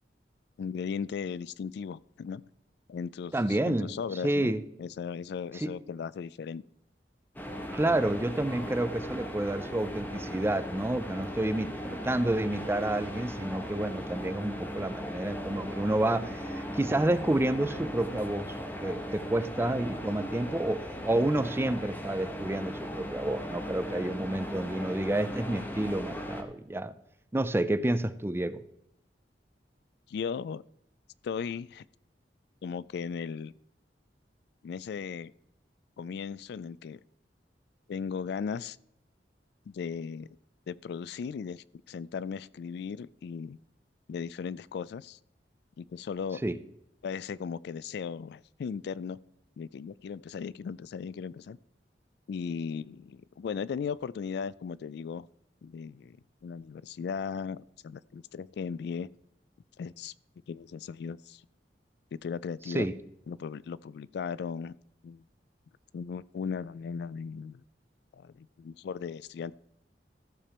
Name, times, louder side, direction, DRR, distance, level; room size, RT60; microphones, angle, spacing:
voice 1, 0.6-2.4 2.9-4.5 4.8-6.6 30.1-30.6 31.2-31.9 32.6-33.5 34.6-35.3 36.0-37.0 37.9-38.8 39.7-40.3 40.7-43.6 44.1-45.2 45.8-46.4 47.0-49.2 49.6-51.6 52.3-55.3 55.6-56.2 56.4-59.1 59.8-60.1 60.5-61.4 62.1-62.9 63.3-64.7 65.0-65.2 65.9-67.6 68.1-69.5, left 6 dB, 70° left, 20 dB, 0.3 m, -37 dB
voice 2, 3.3-3.9 4.2-4.6 5.5-5.7 7.7-18.6 18.8-26.9 27.3-28.6 46.4-46.6 62.7-62.9, right 1 dB, 15° right, 12 dB, 0.5 m, -29 dB
sound 1, 7.4-26.4, equal, 10° left, 1.2 m, -38 dB
14.0 x 6.8 x 4.3 m, 0.78 s
head